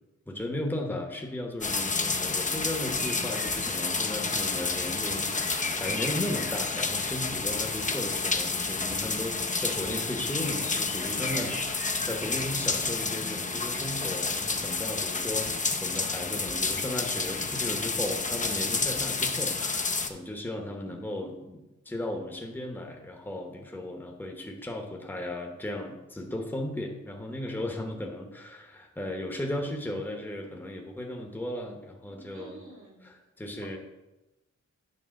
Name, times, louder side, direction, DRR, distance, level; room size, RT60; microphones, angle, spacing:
voice 1, 0.3-11.8 12.0-15.5 15.8-32.6 33.0-33.8, left 1 dB, 5° left, 2 dB, 1.0 m, -36 dB
sound 1, 1.6-20.1, left 4 dB, 25° left, 0.6 m, -30 dB
voice 2, 11.3-11.7 12.1-12.3 32.3-33.1, right 3 dB, 75° right, -3 dB, 2.4 m, -45 dB
9.5 x 3.4 x 6.3 m, 1.0 s
wide cardioid pair, 115°, 30 cm